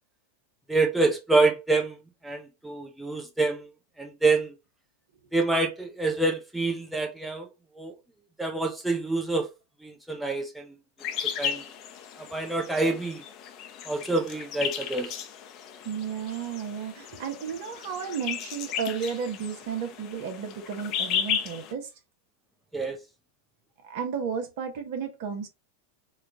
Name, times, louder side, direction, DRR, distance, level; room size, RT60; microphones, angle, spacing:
voice 1, 0.7-2.0 2.2-3.7 4.0-4.5 5.3-7.5 7.8-7.9 8.4-9.5 9.8-10.7 11.4-11.6 12.2-13.2 13.9-15.1 22.7-23.0, right 3 dB, 5° right, 0.7 m, -26 dB
sound 1, 11.0-21.7, left 8 dB, 40° left, 0.6 m, -35 dB
voice 2, 15.8-21.9 23.8-25.5, right 7 dB, 50° right, 1.1 m, -33 dB
4.3 x 2.4 x 3.7 m
figure-of-eight pair, 90°, 0 cm